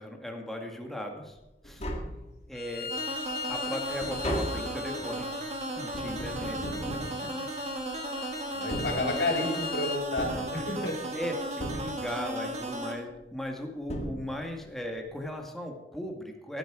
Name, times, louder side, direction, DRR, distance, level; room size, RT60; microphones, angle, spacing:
voice 1, 0.0-1.4 1.6-1.8 2.5-2.9 3.5-5.4 5.8-7.3 7.6-7.7 9.0-9.2 11.1-16.6, left 1 dB, ahead, 2 dB, 1.8 m, -37 dB
Tap, 1.4-1.5 1.6-2.8 3.2-7.9 8.5-9.6 10.2-11.1 11.6-12.4 13.5-13.6 13.9-14.7 15.0-15.1, equal, 40° left, 2.1 m, -37 dB
Bowed string instrument, 2.5-10.0, left 7 dB, 60° left, 1.4 m, -40 dB
sound 1, 2.9-12.9, right 2 dB, 40° right, 2.1 m, -36 dB
voice 2, 8.5-11.0, left 2 dB, 90° left, 1 dB, 3.7 m, -31 dB
16.0 x 9.3 x 4.9 m, 0.98 s
head